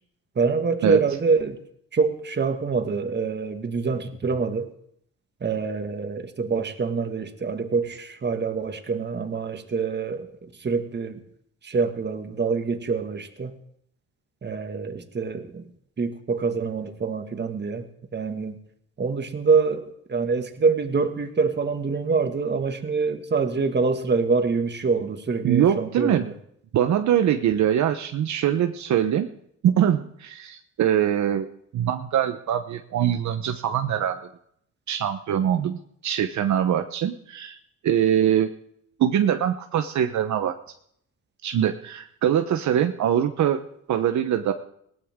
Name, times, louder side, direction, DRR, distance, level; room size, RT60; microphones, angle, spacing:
voice 1, 0.4-1.6 1.9-4.7 5.4-11.2 11.6-13.5 14.4-15.7 16.0-18.6 19.0-26.3, right 4 dB, 35° right, 6 dB, 2.0 m, -25 dB
voice 2, 25.4-26.2 26.7-29.3 29.6-31.5 31.7-34.2 34.9-37.6 37.8-38.5 39.0-40.5 41.4-43.6 43.9-44.5, right 10 dB, 70° right, 7 dB, 1.1 m, -23 dB
20.5 x 18.0 x 3.8 m, 0.70 s
cardioid pair, 90°, 30 cm